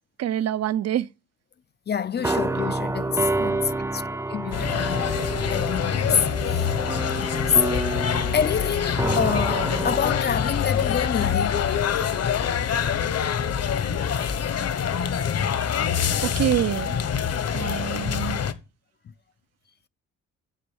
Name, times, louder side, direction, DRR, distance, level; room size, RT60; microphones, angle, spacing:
voice 1, 0.2-1.1 3.4-3.9 16.2-17.0 17.5-18.4, right 11 dB, 55° right, 0.6 m, -26 dB
voice 2, 1.9-5.1 5.5-6.2 6.4-6.7 7.2-7.7 8.3-11.7 19.0-19.1, left 7 dB, 35° left, 0.5 m, -27 dB
sound 1, 2.2-10.7, right 2 dB, 10° right, 0.7 m, -29 dB
sound 2, 4.5-18.5, left 8 dB, 55° left, 1.3 m, -25 dB
8.3 x 6.9 x 7.8 m
cardioid pair, 90°, 30 cm